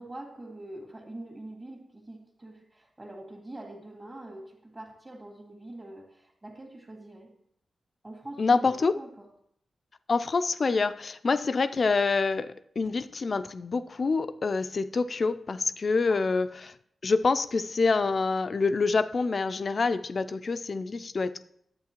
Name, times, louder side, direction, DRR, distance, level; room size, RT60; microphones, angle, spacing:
voice 1, 0.0-7.3 8.0-9.3 16.1-16.2, right 1 dB, 30° right, 1.8 m, -44 dB
voice 2, 8.4-9.0 10.1-16.7 17.0-21.5, left 4 dB, 55° left, 0.4 m, -26 dB
9.6 x 8.0 x 3.0 m
supercardioid pair, 45°, 0 cm